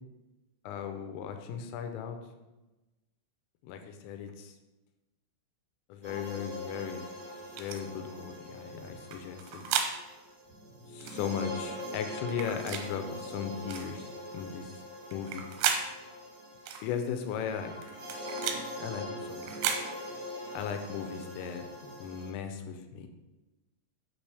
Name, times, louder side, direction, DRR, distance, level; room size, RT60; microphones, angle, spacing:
voice 1, 0.6-2.2 3.6-4.5 5.9-7.1 7.6-9.6 10.9-14.7 15.1-15.4 16.8-17.7 18.8-19.8 20.5-23.1, left 7 dB, 85° left, 6 dB, 3.3 m, -37 dB
sound 1, 6.0-22.3, left 1 dB, 50° right, 2.5 m, -43 dB
sound 2, 7.6-7.8 9.1-9.9 11.0-11.2 12.3-12.9 13.7-13.9 15.1-15.8 16.7-16.8 17.8-18.6 19.4-19.8, right 7 dB, 80° right, 2.8 m, -33 dB
8.2 x 6.5 x 3.4 m, 1.1 s
omnidirectional pair, 5.8 m